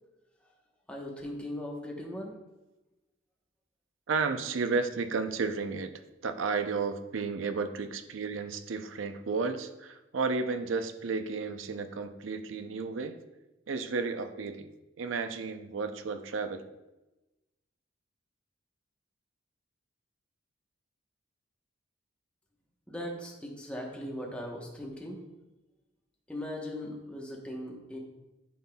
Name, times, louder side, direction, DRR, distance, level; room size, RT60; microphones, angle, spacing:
voice 1, 0.9-2.4 22.9-25.2 26.3-28.0, left 1 dB, 5° left, -1 dB, 0.9 m, -39 dB
voice 2, 4.1-5.9 6.2-13.2 13.7-14.7 15.0-16.7, right 4 dB, 85° right, 10 dB, 0.5 m, -32 dB
9.3 x 5.6 x 2.2 m, 1.0 s
head